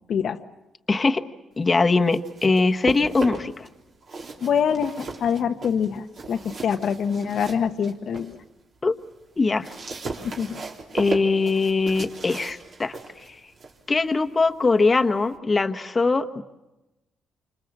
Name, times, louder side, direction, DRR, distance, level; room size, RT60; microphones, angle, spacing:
voice 1, 0.1-0.4 4.4-8.4 10.2-10.6, left 7 dB, 60° left, 6 dB, 1.0 m, -25 dB
voice 2, 0.9-1.2 1.6-3.7 8.8-9.0 9.4-9.7 10.9-13.4 13.9-16.4, left 3 dB, 25° left, 7 dB, 1.3 m, -22 dB
sound 1, 1.8-3.7 4.0-8.4 8.8-15.4, right 3 dB, 55° right, 3.7 m, -37 dB
28.5 x 26.5 x 7.5 m, 1.0 s
cardioid pair, 90°, 0 cm